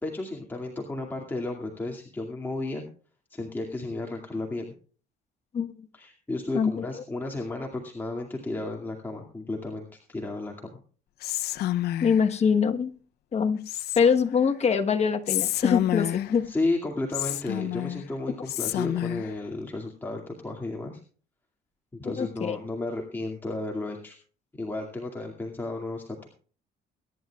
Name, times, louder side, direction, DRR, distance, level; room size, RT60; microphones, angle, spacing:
voice 1, 0.0-2.8 3.3-4.6 5.9-10.8 16.5-21.0 22.0-24.2 24.6-26.3, left 2 dB, 10° left, 0 dB, 2.3 m, -33 dB
voice 2, 6.5-6.9 12.0-12.9 13.3-13.6 14.0-16.5 22.0-22.6, left 6 dB, 40° left, 7 dB, 1.2 m, -24 dB
Whispering, 11.2-12.3 13.7-14.3 15.3-16.4 17.1-18.0 18.5-19.3, left 14 dB, 70° left, 0.7 m, -29 dB
23.0 x 11.0 x 2.4 m, 0.41 s
cardioid pair, 110°, 17 cm